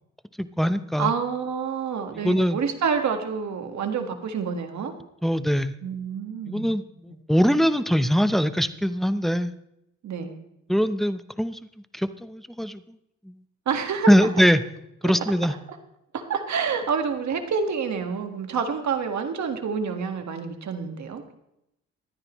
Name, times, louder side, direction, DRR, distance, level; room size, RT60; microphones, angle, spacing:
voice 1, 0.4-1.1 2.2-2.6 5.2-5.7 6.5-9.5 10.7-11.6 11.9-12.8 13.2-13.4 14.1-14.6 15.0-15.5, equal, ahead, 11 dB, 0.8 m, -22 dB
voice 2, 1.0-4.9 5.8-6.7 10.0-10.4 13.7-14.1 16.1-21.3, right 6 dB, 65° right, 6 dB, 1.8 m, -28 dB
24.0 x 9.6 x 3.1 m, 0.81 s
cardioid pair, 80°, 30 cm